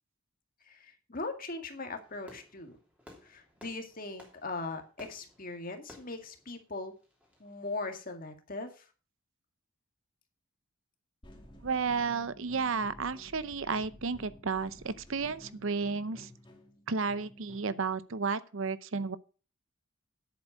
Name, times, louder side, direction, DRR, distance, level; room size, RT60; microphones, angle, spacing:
voice 1, 0.7-2.8 3.2-6.9 7.4-8.8, left 3 dB, 40° left, 2.0 m, -40 dB
Fireworks, 2.0-7.6, left 1 dB, 5° right, 3.1 m, -57 dB
sound 1, 11.2-17.9, equal, 25° left, 2.3 m, -53 dB
voice 2, 11.6-16.3 16.9-19.2, right 5 dB, 65° right, 0.7 m, -32 dB
10.5 x 8.2 x 5.4 m
head